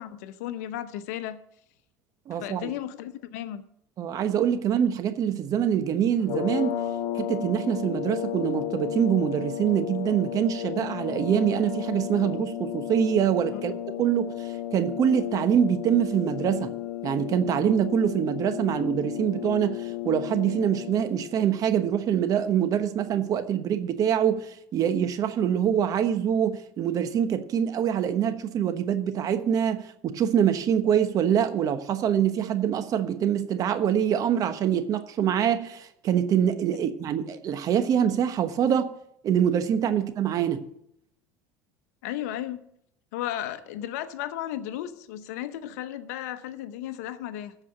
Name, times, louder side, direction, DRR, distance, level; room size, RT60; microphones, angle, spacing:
voice 1, 0.0-1.4 2.4-3.6 13.5-13.6 42.0-42.7 43.1-47.5, left 12 dB, 80° left, 0.9 m, -34 dB
voice 2, 2.3-2.7 4.0-6.7 7.1-13.7 14.0-16.7 17.0-38.9 39.2-40.6, right 9 dB, 45° right, 1.1 m, -25 dB
sound 1, 6.2-21.3, left 12 dB, 55° left, 2.6 m, -33 dB
13.5 x 4.9 x 7.6 m
supercardioid pair, 110°, 9 cm